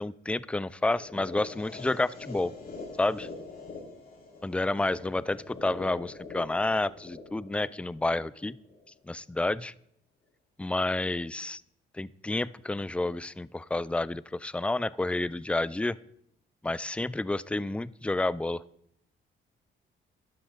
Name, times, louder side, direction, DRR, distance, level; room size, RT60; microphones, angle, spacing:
voice 1, 0.0-2.5 3.0-3.3 4.4-8.6 9.1-9.7 10.6-11.6 11.9-16.0 16.6-18.6, left 2 dB, 5° left, 19 dB, 0.3 m, -30 dB
sound 1, 1.0-9.0, left 3 dB, 50° left, 5.3 m, -44 dB
12.5 x 11.5 x 4.0 m, 0.73 s
cardioid pair, 90°, 20 cm